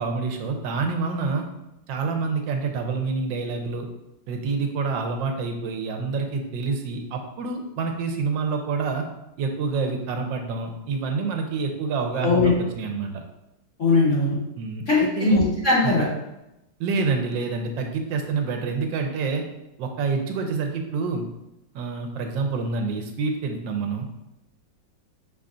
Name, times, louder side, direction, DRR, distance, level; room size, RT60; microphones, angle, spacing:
voice 1, 0.0-1.5 1.9-3.9 4.3-9.0 9.4-13.2 14.6-15.4 15.8-15.9 16.8-19.4 19.8-21.3 21.7-24.1, right 4 dB, 85° right, 4 dB, 1.3 m, -27 dB
voice 2, 12.2-12.5 13.8-14.3 14.9-16.1, left 3 dB, 40° left, -8 dB, 1.9 m, -20 dB
5.4 x 2.4 x 3.7 m, 0.90 s
omnidirectional pair, 2.0 m